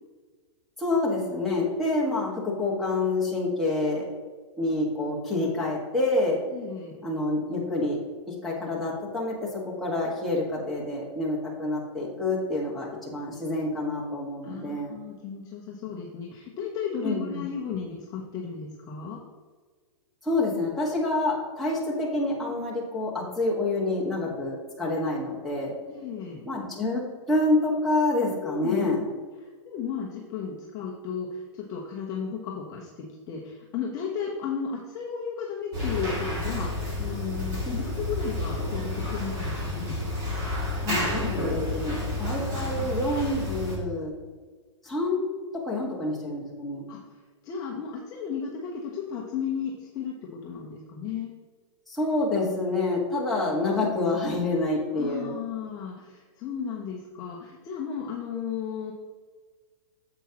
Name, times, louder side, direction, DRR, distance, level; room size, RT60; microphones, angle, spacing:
voice 1, 0.8-4.0 4.6-6.4 7.0-8.0 8.4-9.3 9.6-14.9 17.0-17.4 20.2-25.7 26.4-27.0 27.3-29.0 37.7-37.8 40.8-44.1 44.8-45.2 45.6-46.8 51.9-55.3, left 2 dB, ahead, -6 dB, 1.5 m, -27 dB
voice 2, 6.5-7.0 14.4-19.2 25.9-26.5 28.4-29.0 29.4-40.0 46.9-47.0 47.4-51.3 54.9-58.9, left 6 dB, 20° left, -2 dB, 0.8 m, -34 dB
sound 1, 35.7-43.8, left 1 dB, 25° right, 2.0 m, -30 dB
9.8 x 7.3 x 2.9 m, 1.5 s
hypercardioid pair, 160°, 16 cm